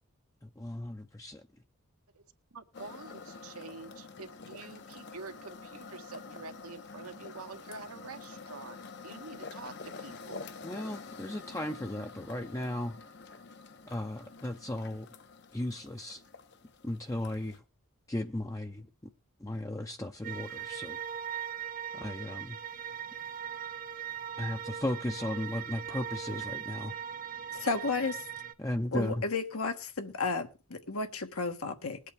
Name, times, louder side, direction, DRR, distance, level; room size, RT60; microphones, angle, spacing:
voice 1, 0.4-1.4 10.6-13.0 13.8-15.1 15.5-16.2 16.8-17.6 18.1-18.9 19.4-21.0 21.9-22.6 24.4-26.9 28.6-29.2, left 1 dB, 15° left, 0.6 m, -36 dB
voice 2, 2.5-8.8 9.0-10.4, right 3 dB, 85° right, 1.6 m, -47 dB
sound 1, 2.7-17.6, left 4 dB, 50° left, 0.8 m, -47 dB
sound 2, 20.2-28.5, right 9 dB, 40° right, 0.6 m, -40 dB
voice 3, 27.5-28.2 28.9-32.0, left 4 dB, 80° left, 1.3 m, -33 dB
20.5 x 8.3 x 3.5 m
head